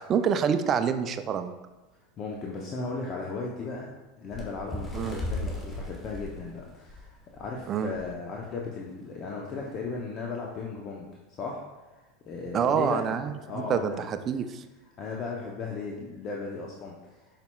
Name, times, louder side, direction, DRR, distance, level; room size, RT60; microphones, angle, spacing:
voice 1, 0.0-1.5 4.9-5.2 7.7-7.9 12.5-14.6, right 7 dB, 35° right, 9 dB, 0.4 m, -27 dB
voice 2, 2.2-3.9 4.2-11.6 11.9-14.1 15.0-17.2, left 4 dB, 40° left, -1 dB, 0.6 m, -36 dB
Bird, 4.3-7.5 7.9-8.1 8.4-8.6 9.4-9.5, left 1 dB, 15° left, 1.1 m, -36 dB
5.7 x 4.1 x 2.2 m, 1.1 s
hypercardioid pair, 95°, 0 cm